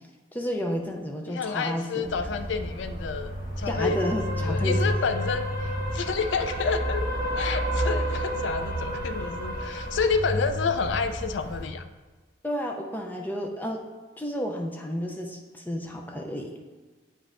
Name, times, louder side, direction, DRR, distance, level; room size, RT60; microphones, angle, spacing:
voice 1, 0.3-2.1 3.7-4.9 12.4-13.8 14.2-16.6, equal, 10° left, 1 dB, 0.4 m, -31 dB
voice 2, 1.3-3.3 3.6-7.1 7.4-11.8, left 5 dB, 80° left, 9 dB, 0.4 m, -29 dB
sound 1, 2.0-11.6, equal, 45° left, 1.2 m, -30 dB
8.4 x 5.1 x 2.5 m, 1.3 s
head